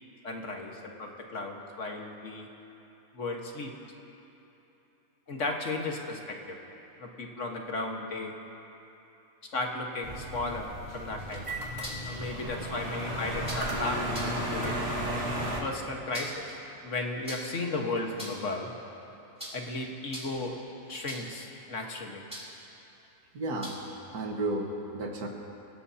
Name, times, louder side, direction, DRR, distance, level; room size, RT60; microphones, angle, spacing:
voice 1, 0.2-2.5 3.1-3.7 5.3-6.6 7.0-8.3 9.5-11.4 12.1-14.9 15.6-18.7 19.5-20.6 20.9-22.2, left 2 dB, 55° left, 1 dB, 1.8 m, -35 dB
sound 1, 10.0-15.6, right 1 dB, 45° right, 2.1 m, -34 dB
sound 2, 11.2-12.1 13.4-13.7 14.1-14.4 15.9-16.5 17.2-17.6 18.0-18.6 19.4-19.7 20.0-20.5 21.1-21.4 22.3-22.6 23.6-24.0, equal, 5° right, 3.3 m, -42 dB
voice 2, 23.3-23.8 24.1-25.3, right 2 dB, 80° right, 0 dB, 2.0 m, -32 dB
28.0 x 17.0 x 2.8 m, 3.0 s
omnidirectional pair, 1.6 m